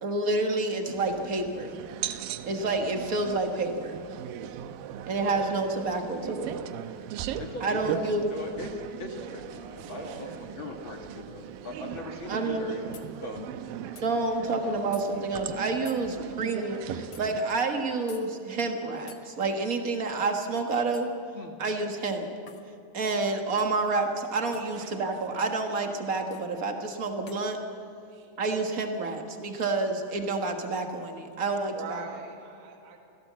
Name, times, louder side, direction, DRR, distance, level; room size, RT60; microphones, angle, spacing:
voice 1, 0.0-1.7 2.5-4.0 5.1-6.6 7.6-8.3 12.3-12.7 13.8-21.1 21.6-22.3 22.9-27.6 28.4-32.0, right 3 dB, 55° right, 4 dB, 0.9 m, -29 dB
sound 1, 0.9-17.4, right 10 dB, 90° right, 2.6 m, -39 dB
voice 2, 7.4-8.7 9.0-12.8 13.2-13.5 21.3-21.6, left 2 dB, 40° left, 2 dB, 2.2 m, -40 dB
voice 3, 9.5-10.5 24.7-25.2 28.1-28.3 28.7-28.8 29.1-29.3 31.7-33.0, right 4 dB, 70° right, 2 dB, 3.1 m, -44 dB
sound 2, 12.9-13.1 14.0-14.1 14.9-15.1 15.9-16.0 17.1-17.3 18.1-18.3 19.1-19.2 20.9-21.2 22.5-22.7 23.6-23.8 24.5-24.7 26.3-26.5 27.3-27.5, left 7 dB, 60° left, 1.1 m, -49 dB
26.5 x 16.5 x 7.4 m, 2.6 s
omnidirectional pair, 4.0 m